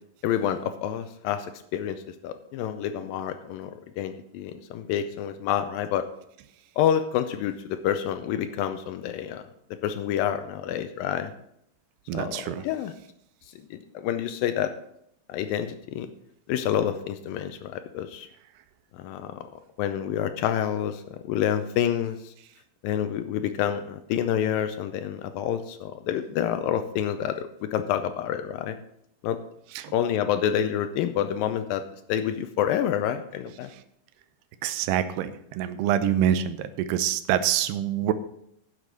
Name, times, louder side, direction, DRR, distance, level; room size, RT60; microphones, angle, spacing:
voice 1, 0.2-2.0 2.2-6.1 6.8-9.5 9.8-11.3 12.1-12.9 13.7-14.7 15.3-16.1 16.5-18.3 18.9-19.5 19.8-22.3 22.8-28.8 29.2-29.4 29.9-31.8 32.1-33.7, left 10 dB, 80° left, 9 dB, 2.1 m, -28 dB
voice 2, 12.1-12.6 29.8-29.9 34.6-38.1, right 10 dB, 90° right, 12 dB, 2.7 m, -26 dB
10.5 x 6.7 x 6.1 m, 0.73 s
omnidirectional pair, 4.5 m